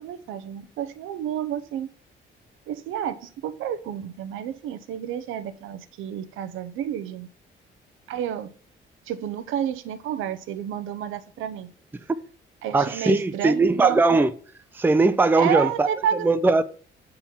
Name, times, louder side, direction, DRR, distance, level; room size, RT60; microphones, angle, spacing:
voice 1, 0.0-1.9 2.7-7.3 8.1-8.5 9.1-11.7 12.6-14.0 15.4-16.3, right 9 dB, 90° right, 0.7 m, -30 dB
voice 2, 12.7-14.3 14.7-15.9 16.2-16.6, right 3 dB, 10° right, 0.5 m, -19 dB
7.0 x 3.9 x 5.7 m
cardioid pair, 90°, 20 cm